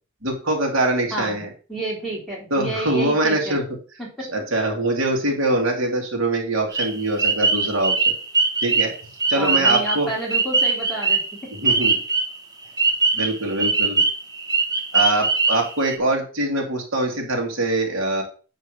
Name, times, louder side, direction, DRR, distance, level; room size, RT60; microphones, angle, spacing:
voice 1, 0.2-1.5 2.5-3.6 4.3-7.9 8.6-8.9 9.3-10.1 11.6-12.0 13.1-14.0 14.9-18.2, right 2 dB, 70° right, 1 dB, 2.3 m, -23 dB
voice 2, 1.1-3.6 4.0-4.3 9.4-11.5, right 1 dB, ahead, -4 dB, 3.4 m, -30 dB
sound 1, 6.7-12.4 12.8-15.9, right 4 dB, 20° right, 1.4 m, -21 dB
9.4 x 3.7 x 6.4 m, 0.37 s
head